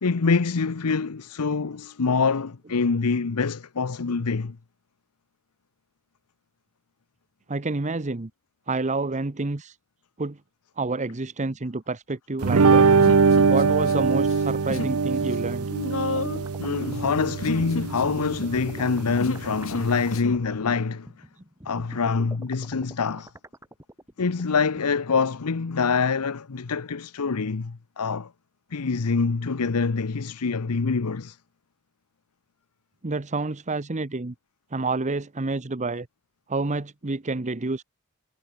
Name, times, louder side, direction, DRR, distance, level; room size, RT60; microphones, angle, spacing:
voice 1, 0.0-4.6 16.6-21.1 21.7-23.3 24.2-28.3 28.7-31.4, left 4 dB, 90° left, 0.8 m, -25 dB
voice 2, 7.5-8.3 8.7-9.8 10.2-10.4 10.8-12.9 13.5-15.7 33.0-34.3 34.7-36.1 36.5-37.8, right 3 dB, 35° right, 0.9 m, -28 dB
sound 1, 12.4-20.1, right 4 dB, 70° right, 0.7 m, -22 dB
Human voice, 13.0-13.9 14.2-15.0 15.2-20.4, left 2 dB, 65° left, 3.4 m, -33 dB
sound 2, 16.1-24.8, right 1 dB, 15° right, 7.5 m, -45 dB
head